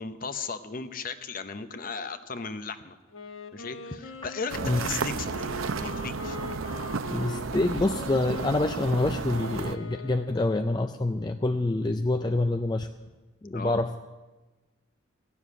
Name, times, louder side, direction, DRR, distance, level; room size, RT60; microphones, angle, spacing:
voice 1, 0.0-3.0 3.5-6.4 13.5-13.8, left 4 dB, 45° left, 11 dB, 0.8 m, -36 dB
Wind instrument woodwind instrument, 3.1-10.7, left 4 dB, 80° left, 1.2 m, -42 dB
sound 1, 4.5-9.8, right 5 dB, 85° right, 0.6 m, -33 dB
voice 2, 7.1-12.9 13.4-14.0, left 2 dB, 20° left, 7 dB, 0.4 m, -26 dB
16.0 x 7.1 x 9.8 m, 1.2 s
head